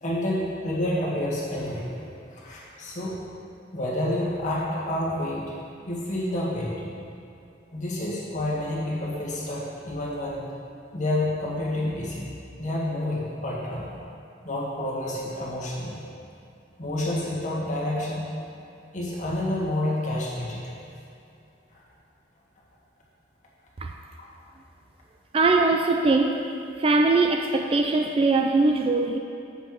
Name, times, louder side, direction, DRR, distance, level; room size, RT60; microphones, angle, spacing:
voice 1, 0.0-1.9 2.3-3.2 3.7-5.4 5.9-6.8 7.7-10.4 10.9-12.3 12.6-13.9 14.4-16.0 16.8-18.2 18.9-20.7 24.2-24.3, left 1 dB, 40° left, -5 dB, 1.7 m, -29 dB
voice 2, 25.3-26.5 26.8-29.2, right 3 dB, 30° right, 3 dB, 0.3 m, -21 dB
7.4 x 5.7 x 7.5 m, 2.7 s
head